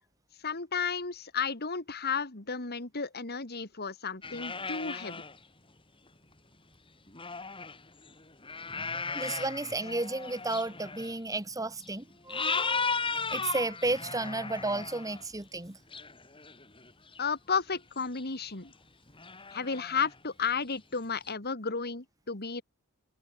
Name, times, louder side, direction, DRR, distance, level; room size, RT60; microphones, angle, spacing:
voice 1, 0.4-5.2 17.2-18.7 19.5-22.6, left 5 dB, 45° left, 2.4 m, -33 dB
sound 1, 4.2-5.4 6.1-6.2 7.1-11.1 11.8-11.9 12.3-15.2 15.9-17.3 17.7-17.8 18.1-18.2 18.7-18.8 19.1-20.2 21.3-21.4, left 4 dB, 25° left, 5.7 m, -36 dB
voice 2, 9.1-13.0 13.3-15.8, right 2 dB, 15° right, 1.6 m, -33 dB
open air
head